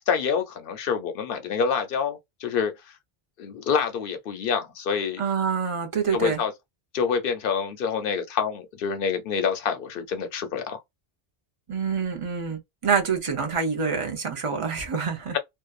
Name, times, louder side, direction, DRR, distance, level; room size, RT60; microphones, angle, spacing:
voice 1, 0.0-3.0 3.4-5.2 6.1-6.5 6.9-10.8 15.3-15.4, left 6 dB, 65° left, 0.8 m, -27 dB
voice 2, 5.2-6.4 11.7-15.4, right 6 dB, 40° right, 0.6 m, -26 dB
2.6 x 2.2 x 2.3 m
omnidirectional pair, 1.0 m